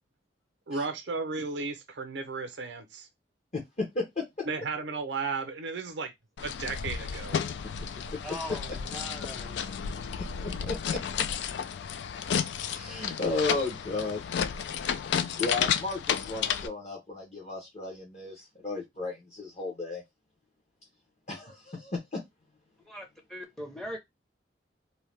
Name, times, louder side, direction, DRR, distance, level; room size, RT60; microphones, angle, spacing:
voice 1, 0.7-3.1 4.5-6.1 6.4-7.4, right 4 dB, 75° right, 0.6 m, -34 dB
sound 1, 6.4-16.7, left 8 dB, 75° left, 0.3 m, -32 dB
voice 2, 8.2-9.8 22.9-24.0, equal, ahead, 0.6 m, -41 dB
voice 3, 10.2-11.2 12.6-14.2 15.4-20.0 21.3-22.2, left 3 dB, 40° left, 0.8 m, -34 dB
2.7 x 2.1 x 3.2 m
head